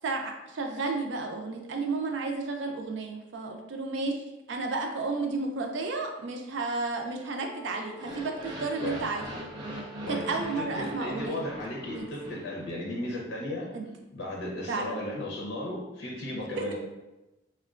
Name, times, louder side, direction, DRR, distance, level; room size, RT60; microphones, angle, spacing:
voice 1, 0.0-9.3 10.3-11.4 11.9-12.1 13.7-13.9 14.7-15.0 16.6-16.7, right 3 dB, 80° right, 3 dB, 0.4 m, -32 dB
Wind instrument woodwind instrument, 7.4-12.5, equal, 55° left, 0.3 m, -49 dB
sound 1, 7.9-13.1, right 1 dB, 25° right, 0.4 m, -41 dB
voice 2, 10.6-13.7 14.1-16.7, left 1 dB, 85° left, -3 dB, 0.7 m, -35 dB
3.6 x 2.2 x 2.4 m, 1.0 s
head